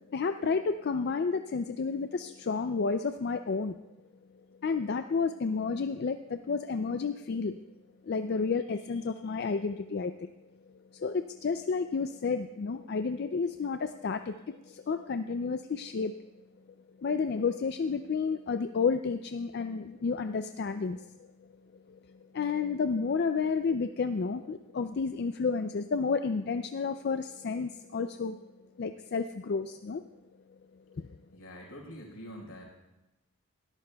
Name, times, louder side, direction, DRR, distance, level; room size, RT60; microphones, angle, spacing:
voice 1, 0.1-3.8 4.6-7.6 8.0-10.3 10.9-16.1 17.0-21.1 21.9-22.0 22.3-28.4 28.8-30.0 30.9-31.1, left 5 dB, 50° left, 8 dB, 0.4 m, -31 dB
voice 2, 31.3-32.6, equal, 80° left, -1 dB, 4.3 m, -45 dB
20.5 x 13.5 x 2.3 m, 0.99 s
head